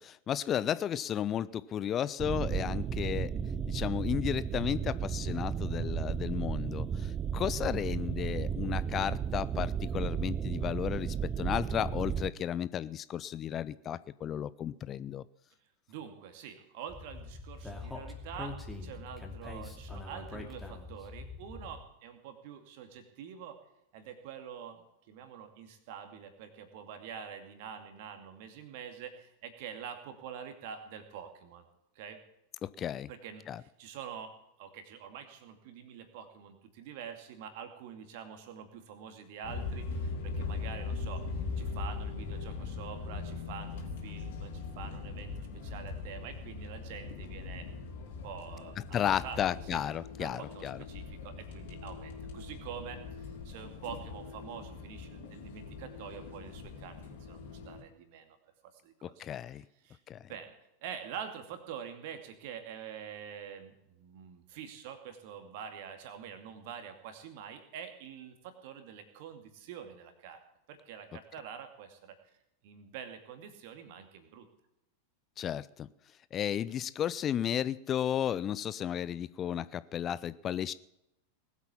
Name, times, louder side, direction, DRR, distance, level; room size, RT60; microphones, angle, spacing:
voice 1, 0.0-3.3 3.7-15.2 32.6-33.1 33.5-33.6 48.9-50.8 59.0-59.6 60.1-60.2 75.4-75.9 76.3-80.7, left 10 dB, 30° left, 17 dB, 0.4 m, -33 dB
sound 1, 2.2-12.3, right 7 dB, 25° right, 0.7 m, -34 dB
voice 2, 15.9-23.6 23.9-31.7 31.9-32.2 33.1-49.4 49.7-49.8 50.2-58.4 58.6-59.2 59.5-60.0 60.3-60.6 60.8-70.4 70.7-72.2 72.6-74.5, right 8 dB, 50° right, 7 dB, 2.4 m, -46 dB
Speech, 16.9-21.8, left 3 dB, 5° left, 2.7 m, -43 dB
sound 2, 39.4-57.8, left 4 dB, 55° left, 3.8 m, -40 dB
20.0 x 8.3 x 7.2 m, 0.82 s
figure-of-eight pair, 90°, 0 cm